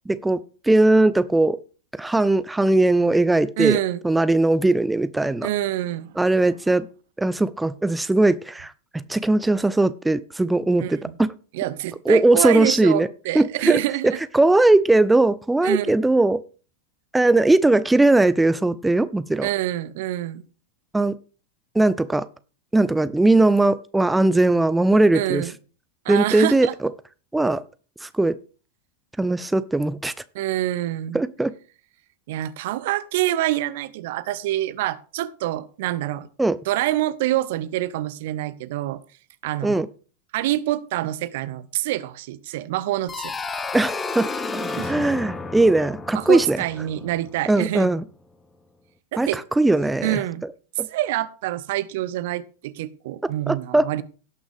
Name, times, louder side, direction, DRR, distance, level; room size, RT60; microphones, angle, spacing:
voice 1, 0.1-1.6 2.0-5.5 6.2-6.9 7.2-11.3 12.1-13.1 13.3-16.4 17.1-19.5 20.9-21.2 21.7-22.3 22.7-25.5 26.1-26.7 27.3-27.6 28.0-28.4 29.2-30.1 31.1-31.5 36.4-36.6 39.6-39.9 43.7-44.3 44.9-46.6 47.5-48.0 49.2-50.2 50.8-50.9 53.5-54.0, right 2 dB, 5° right, 0.5 m, -19 dB
voice 2, 3.6-4.0 5.4-6.2 10.8-11.1 11.5-14.2 15.6-15.9 19.4-20.4 25.1-25.5 26.0-26.7 30.3-31.2 32.3-36.3 36.7-39.0 39.4-39.8 40.3-43.3 44.7-45.1 46.1-47.9 49.1-49.4 50.0-50.4 50.9-54.0, right 15 dB, 50° right, 0.7 m, -26 dB
sound 1, 43.1-47.7, left 3 dB, 15° left, 0.9 m, -32 dB
17.5 x 6.0 x 3.5 m
figure-of-eight pair, 90°, 0 cm